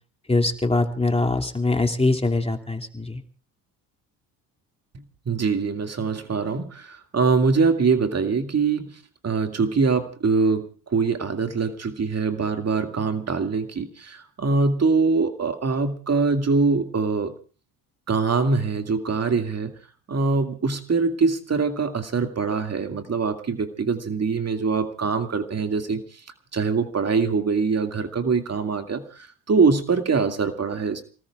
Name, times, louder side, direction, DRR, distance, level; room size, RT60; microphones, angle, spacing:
voice 1, 0.3-3.2, left 2 dB, 15° left, 4 dB, 2.5 m, -23 dB
voice 2, 5.3-9.0 9.2-17.3 18.1-19.7 20.1-26.2 26.5-31.0, right 4 dB, 35° right, 6 dB, 2.2 m, -23 dB
29.5 x 19.0 x 2.4 m, 0.38 s
hypercardioid pair, 60°, 45 cm